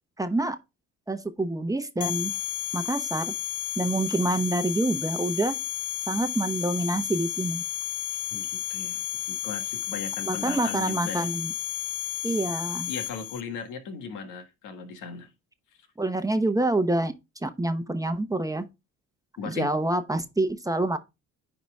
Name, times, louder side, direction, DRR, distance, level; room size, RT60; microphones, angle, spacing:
voice 1, 0.2-0.6 1.1-2.3 2.7-3.3 3.8-5.6 6.1-7.6 10.2-11.5 12.2-12.9 16.0-17.1 17.4-18.7 19.4-21.0, right 2 dB, 10° right, 0.9 m, -27 dB
sound 1, 2.0-13.4, left 12 dB, 50° left, 0.8 m, -32 dB
voice 2, 8.3-11.3 12.9-15.3 19.4-19.7, left 5 dB, 85° left, 1.7 m, -37 dB
10.0 x 3.9 x 3.5 m
cardioid pair, 90°, 30 cm